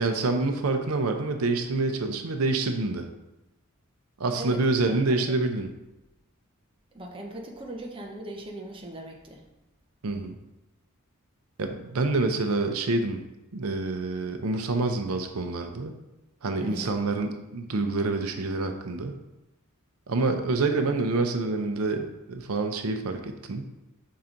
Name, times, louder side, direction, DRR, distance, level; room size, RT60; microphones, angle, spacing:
voice 1, 0.0-3.1 4.2-5.7 10.0-10.3 11.6-13.2 13.5-15.9 16.4-19.2 20.1-23.6, right 3 dB, 90° right, 6 dB, 0.6 m, -27 dB
voice 2, 4.4-5.4 6.9-9.4 16.6-17.0, right 1 dB, 25° right, 0 dB, 0.8 m, -40 dB
5.9 x 4.7 x 3.8 m, 0.96 s
head